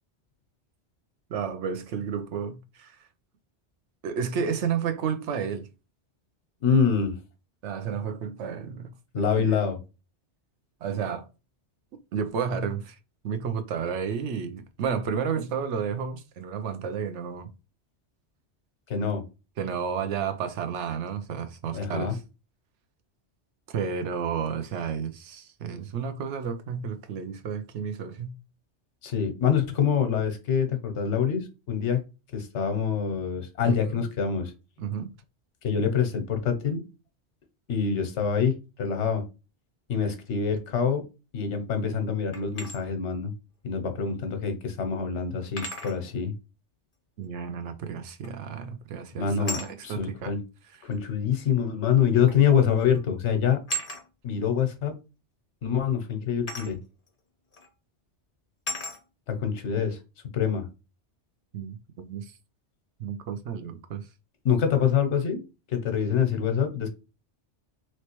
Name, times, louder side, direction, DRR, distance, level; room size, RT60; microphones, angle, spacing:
voice 1, 1.3-3.0 4.0-5.7 7.6-9.7 10.8-11.3 12.1-13.0 13.2-17.5 19.6-22.2 23.7-28.3 33.6-34.0 34.8-35.1 47.2-50.3 61.5-62.3 63.0-64.1, right 7 dB, 85° right, 0.9 m, -32 dB
voice 2, 6.6-7.1 9.1-9.8 18.9-19.2 21.7-22.1 29.0-32.0 32.3-34.5 35.6-36.8 37.7-39.2 39.9-41.1 41.3-43.3 43.6-46.3 49.1-50.4 50.8-53.6 54.2-55.0 55.6-56.8 59.3-60.0 60.3-60.7 64.4-65.4 65.7-66.9, left 7 dB, 85° left, 1.1 m, -25 dB
sound 1, 42.3-42.8 44.3-44.4 45.6-46.0 48.2-48.5 49.4-49.7 50.9-51.0 52.3-52.5 52.8-53.0 53.7-54.0 56.5-56.7 57.5-57.7 58.7-59.0, equal, 35° left, 0.9 m, -35 dB
3.1 x 3.0 x 2.9 m
omnidirectional pair, 1.2 m